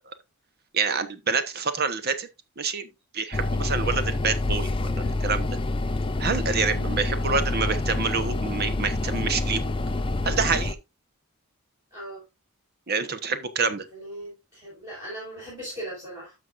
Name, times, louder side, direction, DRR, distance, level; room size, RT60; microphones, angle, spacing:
voice 1, 0.7-2.3 2.6-5.5 6.2-9.6 10.2-10.8 12.9-13.9, right 5 dB, 45° right, 1.0 m, -27 dB
sound 1, 3.3-10.7, left 2 dB, 25° left, 0.4 m, -27 dB
voice 2, 11.9-12.2 13.7-16.3, right 1 dB, 15° right, 5.2 m, -39 dB
12.5 x 6.1 x 2.5 m
head